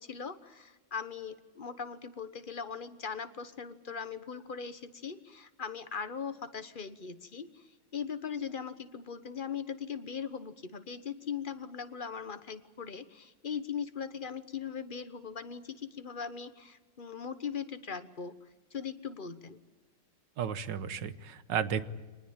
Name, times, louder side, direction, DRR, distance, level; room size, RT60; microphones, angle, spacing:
voice 1, 0.0-19.6, left 6 dB, 35° left, 11 dB, 1.1 m, -40 dB
voice 2, 20.4-21.8, right 8 dB, 75° right, 13 dB, 1.8 m, -33 dB
25.0 x 20.0 x 8.8 m, 1.2 s
omnidirectional pair, 2.0 m